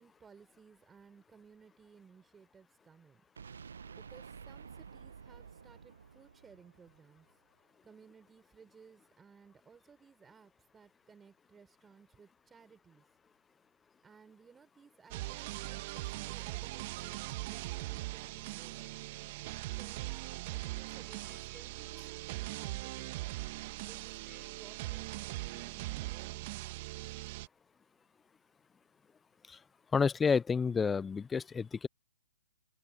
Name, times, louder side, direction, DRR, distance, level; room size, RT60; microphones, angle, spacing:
voice 1, 0.0-3.2 3.9-7.3 7.8-13.0 14.0-18.8 19.7-23.3 23.9-26.5, right 6 dB, 10° right, 5.9 m, -60 dB
sound 1, 3.4-7.3, right 6 dB, 70° right, 0.8 m, -51 dB
sound 2, 15.1-27.5, right 19 dB, 40° right, 1.5 m, -40 dB
voice 2, 29.9-31.9, left 5 dB, 10° left, 0.4 m, -30 dB
open air
hypercardioid pair, 130°, 0 cm